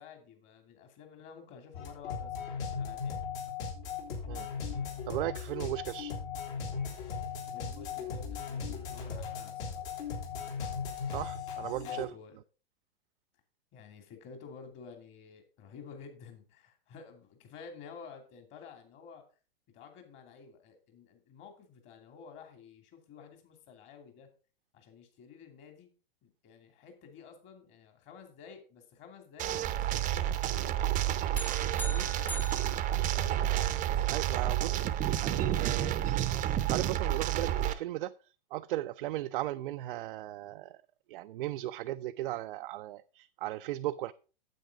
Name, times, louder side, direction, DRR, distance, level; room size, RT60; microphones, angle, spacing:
voice 1, 0.0-3.3 7.5-9.9 11.6-12.4 13.7-19.2 19.7-24.3 24.7-25.9 26.2-31.0 31.8-32.3, left 6 dB, 40° left, 2.7 m, -51 dB
sound 1, 1.7-12.0, left 6 dB, 60° left, 3.4 m, -37 dB
voice 2, 4.3-4.7 5.0-6.1 11.1-12.1 34.1-36.4 36.7-38.1 38.5-40.8 41.1-44.1, right 15 dB, 60° right, 0.5 m, -37 dB
sound 2, 29.4-37.7, right 12 dB, 25° right, 0.7 m, -30 dB
sound 3, 31.4-33.8, left 1 dB, 5° left, 0.5 m, -44 dB
9.2 x 8.0 x 3.8 m
hypercardioid pair, 110°, 30 cm